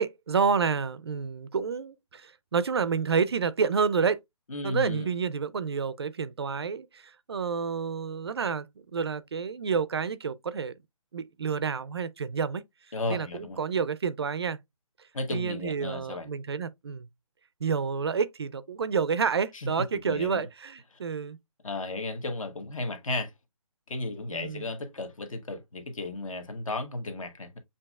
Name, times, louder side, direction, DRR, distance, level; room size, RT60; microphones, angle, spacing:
voice 1, 0.0-4.2 4.6-8.7 8.9-10.7 11.1-12.6 13.1-14.6 15.3-17.1 17.6-21.4 24.3-24.7, right 6 dB, 45° right, 0.4 m, -29 dB
voice 2, 4.5-5.1 12.9-13.6 15.1-16.3 19.5-19.7 20.0-20.5 20.9-21.0 21.6-23.3 23.9-27.6, left 2 dB, 65° left, 1.4 m, -34 dB
6.7 x 2.8 x 2.2 m
hypercardioid pair, 165°, 18 cm